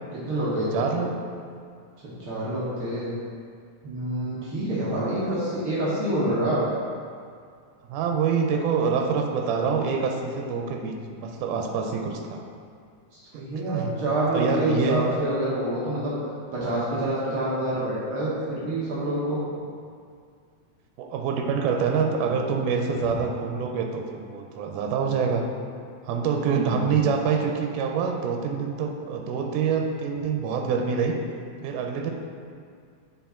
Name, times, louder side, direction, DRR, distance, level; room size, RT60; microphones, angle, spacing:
voice 1, 0.1-0.9 2.2-3.1 3.8-6.6 13.1-16.1 16.5-19.4 26.4-27.0, right 1 dB, 65° right, -8 dB, 1.4 m, -27 dB
voice 2, 0.7-1.2 4.2-4.5 7.9-12.4 13.3-14.0 14.3-15.1 21.0-25.4 26.0-31.2 31.6-32.1, right 6 dB, 90° right, 3 dB, 2.1 m, -26 dB
5.9 x 4.6 x 4.3 m, 2.2 s
omnidirectional pair, 3.6 m